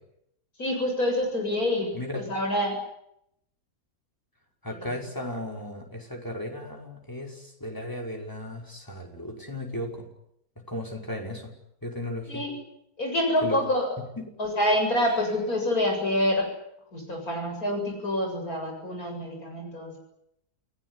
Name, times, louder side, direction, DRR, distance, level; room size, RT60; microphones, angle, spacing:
voice 1, 0.6-2.8 4.7-4.9 12.3-12.5 13.0-14.0 14.4-16.5 16.9-20.0, left 1 dB, 60° left, 3 dB, 8.2 m, -27 dB
voice 2, 4.6-10.1 10.7-11.5 11.8-12.4 13.4-13.6 14.2-14.3, left 1 dB, 10° left, 1 dB, 5.6 m, -35 dB
29.5 x 18.5 x 10.0 m, 0.77 s
omnidirectional pair, 1.7 m